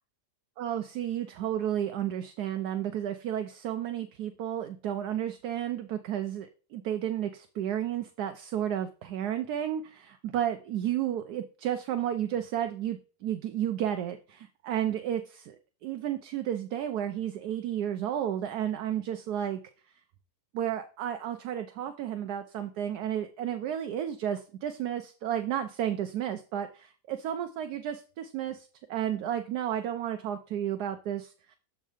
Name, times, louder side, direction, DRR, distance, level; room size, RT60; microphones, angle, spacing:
voice 1, 0.6-19.6 20.5-31.6, right 10 dB, 70° right, 8 dB, 1.1 m, -32 dB
7.4 x 3.7 x 4.9 m, 0.36 s
omnidirectional pair, 1.9 m